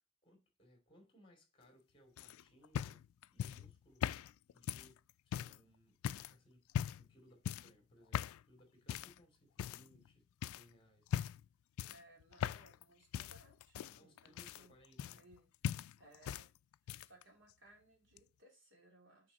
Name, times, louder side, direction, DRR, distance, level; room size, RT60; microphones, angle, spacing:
voice 1, 0.2-4.1 4.5-11.2 13.9-15.3, equal, 25° left, 2.6 m, -66 dB
sound 1, 2.2-5.6 6.0-6.3 6.7-7.1 7.4-7.8 8.1-8.4 8.9-9.2 9.6-10.1 10.4-10.6 11.1-11.5 11.8-12.8 13.1-15.4 15.6-16.5 16.7-17.2 18.2-18.3, left 9 dB, 90° left, 0.3 m, -40 dB
voice 2, 11.9-14.8 15.1-16.5 16.8-19.3, right 1 dB, 65° right, 2.4 m, -64 dB
6.4 x 5.0 x 4.0 m
head